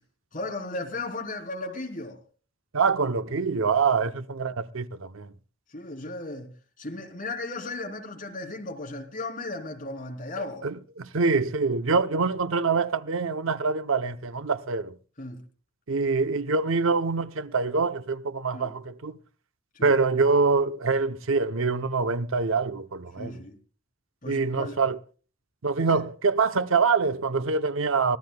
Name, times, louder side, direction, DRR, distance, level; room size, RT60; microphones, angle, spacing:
voice 1, 0.3-2.2 5.7-6.5 6.8-10.7 15.2-15.4 18.5-18.7 19.7-19.9 23.2-23.6 24.2-24.8 25.9-26.0, left 2 dB, 45° left, 3.0 m, -35 dB
voice 2, 2.7-5.3 10.6-14.9 15.9-19.2 19.8-23.3 24.3-25.0 25.6-28.2, right 4 dB, 85° right, 0.7 m, -25 dB
24.0 x 15.5 x 2.2 m
head